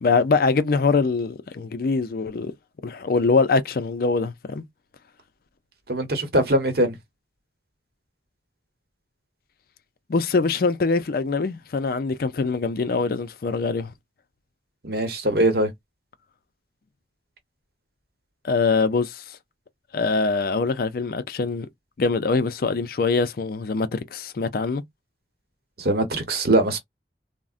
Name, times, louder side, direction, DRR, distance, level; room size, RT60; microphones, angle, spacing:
voice 1, 0.0-2.5 2.8-4.6 10.1-13.9 18.4-19.4 19.9-21.7 22.0-24.8, left 4 dB, 55° left, 0.4 m, -23 dB
voice 2, 5.9-7.0 14.8-15.7 25.8-26.8, right 1 dB, 60° right, 0.9 m, -21 dB
3.6 x 2.1 x 2.4 m
head